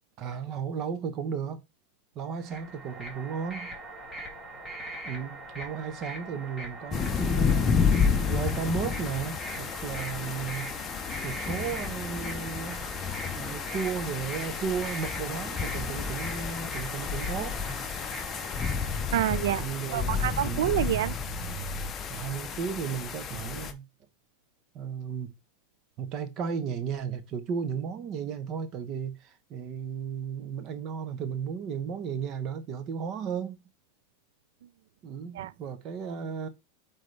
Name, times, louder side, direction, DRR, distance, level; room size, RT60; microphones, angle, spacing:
voice 1, 0.2-1.6 2.1-3.7 5.0-7.7 8.2-10.7 11.2-12.9 13.4-17.6 19.6-20.7 22.1-23.8 24.7-25.3 26.0-33.6 35.0-36.5, right 6 dB, 35° right, 1.0 m, -34 dB
sound 1, 2.3-19.4, right 1 dB, 5° right, 2.0 m, -41 dB
sound 2, 6.9-23.7, left 6 dB, 25° left, 0.8 m, -31 dB
voice 2, 19.1-19.6 19.9-21.9 35.3-35.5, right 13 dB, 75° right, 0.4 m, -28 dB
8.0 x 4.1 x 3.3 m
supercardioid pair, 155°, 0 cm